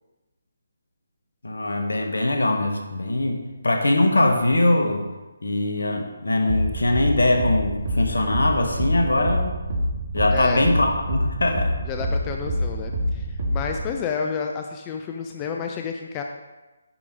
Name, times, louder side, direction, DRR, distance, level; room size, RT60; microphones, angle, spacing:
voice 1, 1.4-5.0 5.4-9.6 10.1-11.7, left 2 dB, 70° left, 4 dB, 1.4 m, -22 dB
sound 1, 6.5-13.9, equal, 50° right, 2.2 m, -26 dB
voice 2, 10.3-10.7 11.9-16.2, left 6 dB, 20° left, 3 dB, 0.5 m, -30 dB
9.8 x 5.2 x 4.7 m, 1.1 s
figure-of-eight pair, 145°, 0 cm